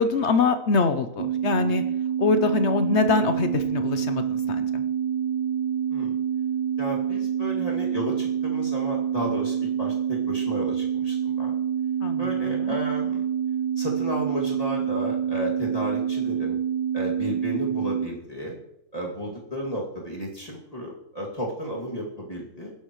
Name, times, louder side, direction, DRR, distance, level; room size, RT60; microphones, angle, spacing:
voice 1, 0.0-1.8 2.2-4.6 12.0-12.2 12.6-12.7, left 4 dB, 60° left, 9 dB, 1.0 m, -23 dB
sound 1, 1.2-18.1, right 8 dB, 45° right, 0.9 m, -27 dB
voice 2, 6.8-11.6 12.2-13.3 13.8-16.6 16.9-18.6 18.9-22.7, equal, 25° left, -3 dB, 2.6 m, -33 dB
20.0 x 11.5 x 3.1 m, 0.83 s
omnidirectional pair, 1.4 m